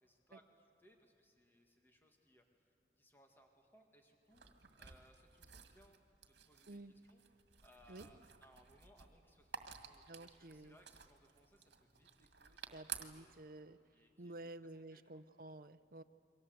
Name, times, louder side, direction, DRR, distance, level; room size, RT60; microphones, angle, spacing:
voice 1, 0.0-4.5 4.8-6.0 6.3-7.2 7.6-13.4 13.9-15.2, equal, 10° left, 3 dB, 2.1 m, -68 dB
sound 1, 4.3-13.4, right 8 dB, 75° right, 2.0 m, -54 dB
voice 2, 10.1-10.7 12.7-13.8 14.2-16.0, right 2 dB, 55° right, 12 dB, 0.8 m, -52 dB
29.5 x 23.5 x 8.1 m, 2.8 s
head